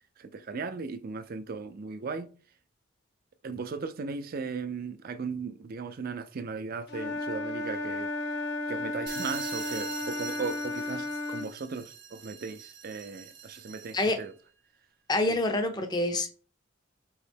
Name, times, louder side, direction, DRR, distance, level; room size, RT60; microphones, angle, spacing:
voice 1, 0.2-2.3 3.4-8.4 8.7-14.3 15.3-15.4, right 4 dB, 50° right, 0.4 m, -37 dB
Wind instrument woodwind instrument, 6.9-11.5, left 2 dB, 65° left, 0.7 m, -34 dB
sound 1, 9.1-14.3, right 7 dB, 65° right, 0.9 m, -43 dB
voice 2, 15.1-16.3, left 2 dB, 20° left, 0.6 m, -27 dB
4.7 x 3.1 x 3.4 m
head